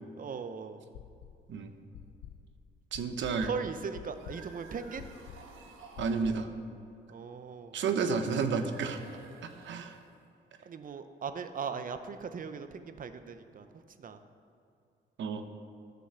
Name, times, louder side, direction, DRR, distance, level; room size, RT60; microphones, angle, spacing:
voice 1, 0.2-0.8 3.4-5.0 7.1-7.8 10.7-13.7 14.0-14.2, right 6 dB, 45° right, 9 dB, 0.8 m, -39 dB
sound 1, 0.9-1.5 1.9-6.6, left 9 dB, 85° left, 0.6 m, -48 dB
voice 2, 2.9-3.5 6.0-6.5 7.7-9.0 9.6-10.0 15.2-15.4, right 5 dB, 70° right, 7 dB, 0.9 m, -31 dB
sound 2, 4.0-6.4 7.8-10.2, right 4 dB, 90° right, 1.4 m, -53 dB
11.5 x 6.2 x 6.9 m, 2.5 s
cardioid pair, 90°, 20 cm